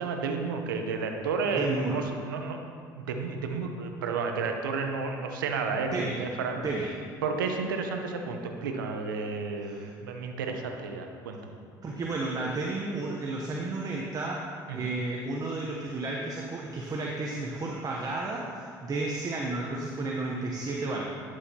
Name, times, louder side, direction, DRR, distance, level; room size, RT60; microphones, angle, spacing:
voice 1, 0.0-2.6 2.9-6.7 7.2-11.6 14.7-14.9, right 4 dB, 90° right, 4 dB, 0.7 m, -32 dB
voice 2, 1.5-2.0 5.9-6.2 6.6-6.9 9.6-9.9 11.8-14.4 14.7-21.1, right 2 dB, 35° right, -2 dB, 0.9 m, -32 dB
11.0 x 6.4 x 2.9 m, 2.1 s
hypercardioid pair, 65°, 11 cm